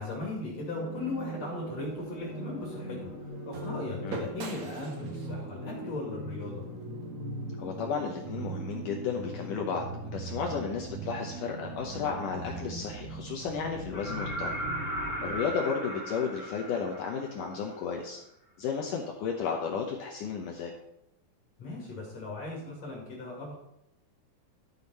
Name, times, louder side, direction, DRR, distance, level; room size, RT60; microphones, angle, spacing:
voice 1, 0.0-3.1 3.4-6.6 10.5-10.7 21.6-23.6, left 2 dB, 45° left, -2 dB, 2.9 m, -38 dB
sound 1, 0.5-15.5, right 2 dB, 30° right, 1.5 m, -40 dB
sound 2, 1.3-7.5, right 3 dB, 75° right, 1.3 m, -46 dB
voice 2, 7.6-14.7 15.2-18.2 18.6-20.7, left 6 dB, 80° left, 1 dB, 1.9 m, -33 dB
sound 3, 13.9-17.7 19.6-19.7, right 1 dB, 30° left, 1.5 m, -36 dB
12.0 x 7.0 x 4.1 m, 0.82 s
omnidirectional pair, 4.8 m